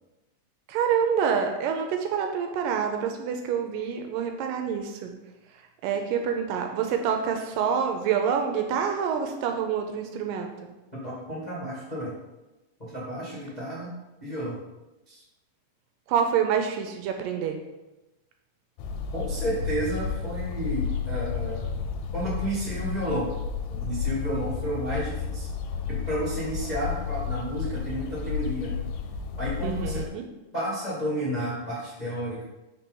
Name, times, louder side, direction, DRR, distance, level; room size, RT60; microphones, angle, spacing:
voice 1, 0.7-5.1 5.8-10.5 16.1-17.6 29.6-30.3, right 7 dB, 80° right, 4 dB, 2.1 m, -27 dB
voice 2, 11.0-12.1 12.8-13.9 14.2-14.6 15.1-15.2 19.1-21.6 22.1-23.3 23.8-25.5 25.9-28.7 29.4-30.0 30.5-32.4, right 1 dB, 30° left, -9 dB, 0.7 m, -31 dB
sound 1, 18.8-30.1, left 7 dB, 85° left, 2.4 m, -32 dB
sound 2, 19.4-24.8, left 1 dB, 50° left, 1.4 m, -42 dB
4.6 x 4.3 x 5.3 m, 1.0 s
omnidirectional pair, 4.1 m